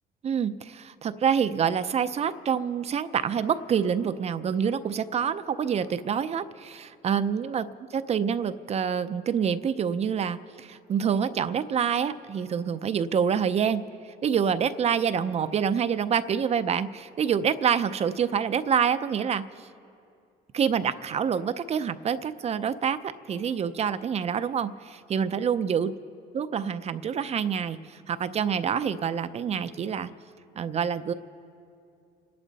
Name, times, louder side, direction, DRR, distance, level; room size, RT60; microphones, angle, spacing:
voice 1, 0.2-7.7 7.9-13.8 14.2-19.7 20.5-25.9 26.3-30.1 30.6-31.1, right 7 dB, 40° right, 12 dB, 0.5 m, -27 dB
29.5 x 11.0 x 4.1 m, 2.5 s
cardioid pair, 110°, 17 cm